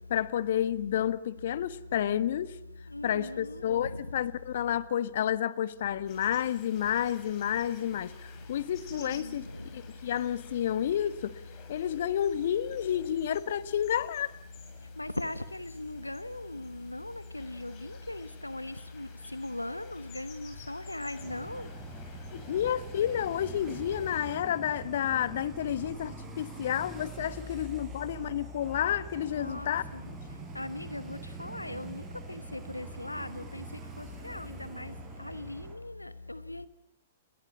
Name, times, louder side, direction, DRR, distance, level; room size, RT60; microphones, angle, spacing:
voice 1, 0.1-2.6 3.0-9.4 9.7-11.4 11.7-14.3 22.3-29.8, left 10 dB, 55° left, 15 dB, 1.4 m, -30 dB
voice 2, 2.9-3.6 9.0-9.4 15.0-21.7 27.4-27.5 29.4-29.7 30.5-32.0 32.3-33.6 34.0-34.9 35.2-36.7, left 1 dB, 90° left, 14 dB, 1.1 m, -39 dB
sound 1, 6.1-24.4, left 6 dB, 35° left, 7.6 m, -54 dB
sound 2, 21.2-35.7, right 4 dB, 20° right, 7.0 m, -45 dB
30.0 x 21.5 x 8.5 m, 0.79 s
figure-of-eight pair, 110°, 0 cm